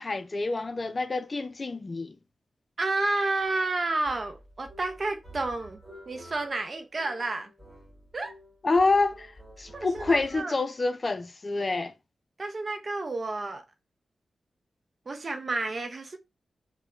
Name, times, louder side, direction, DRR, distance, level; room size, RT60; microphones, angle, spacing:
voice 1, 0.0-2.2 8.6-9.3 9.6-11.9, left 3 dB, 45° left, 0.4 m, -27 dB
voice 2, 2.8-5.8 6.1-7.5 8.1-8.4 9.7-10.6 12.4-13.6 15.1-16.2, right 2 dB, 50° right, 0.5 m, -30 dB
sound 1, 3.4-10.4, right 1 dB, 15° right, 1.5 m, -50 dB
3.5 x 2.1 x 2.2 m
cardioid pair, 50°, 0 cm